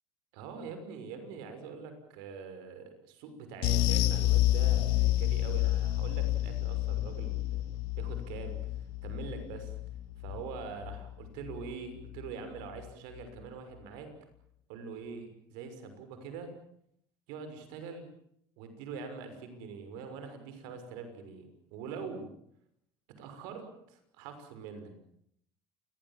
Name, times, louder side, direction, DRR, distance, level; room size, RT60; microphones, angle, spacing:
voice 1, 0.3-7.6 7.9-9.8 10.2-14.1 14.7-16.5 17.3-18.0 18.6-22.3 23.2-24.9, right 5 dB, 85° right, 8 dB, 6.2 m, -43 dB
sound 1, 3.6-12.3 12.6-12.8 13.2-13.3, left 15 dB, 80° left, 2.2 m, -30 dB
28.5 x 21.5 x 7.6 m, 0.71 s
cardioid pair, 120°, 8 cm